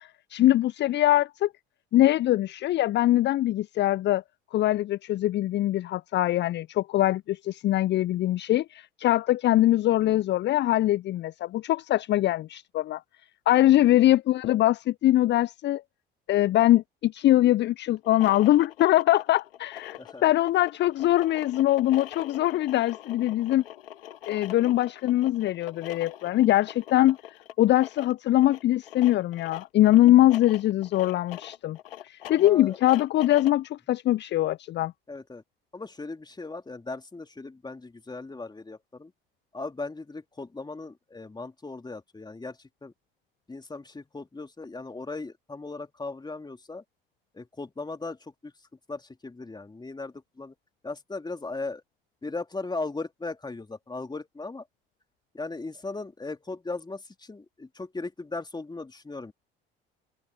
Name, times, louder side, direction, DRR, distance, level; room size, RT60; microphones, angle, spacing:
voice 1, 0.0-1.5 1.9-4.2 4.5-13.0 13.5-15.8 16.3-23.6 24.3-27.2 27.6-31.8 32.0-34.9, left 14 dB, 40° left, 0.7 m, -22 dB
voice 2, 13.6-13.9 20.0-20.2 32.3-32.8 35.1-35.4 35.7-39.1 39.5-42.9 43.5-46.8 47.3-48.5 48.9-50.5 50.8-51.8 52.2-54.7 55.3-59.3, left 3 dB, 15° left, 3.2 m, -37 dB
sound 1, 18.0-33.7, left 12 dB, 75° left, 2.9 m, -44 dB
open air
figure-of-eight pair, 60°, 29 cm